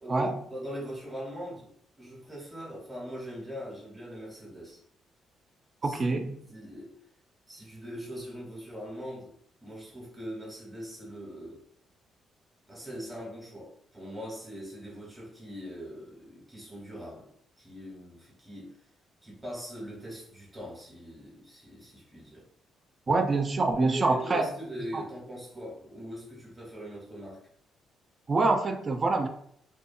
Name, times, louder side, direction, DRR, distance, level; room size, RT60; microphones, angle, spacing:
voice 1, 0.0-1.7 2.0-4.8 5.8-6.2 6.5-7.0 7.5-9.3 9.6-11.6 12.7-17.3 17.6-18.8 19.2-22.4 23.8-27.4, equal, 10° right, -5 dB, 1.1 m, -41 dB
voice 2, 5.8-6.4 23.1-24.5 24.9-25.0 28.3-29.3, right 3 dB, 35° right, 6 dB, 0.4 m, -25 dB
2.6 x 2.3 x 2.6 m, 0.64 s
cardioid pair, 90°, 0 cm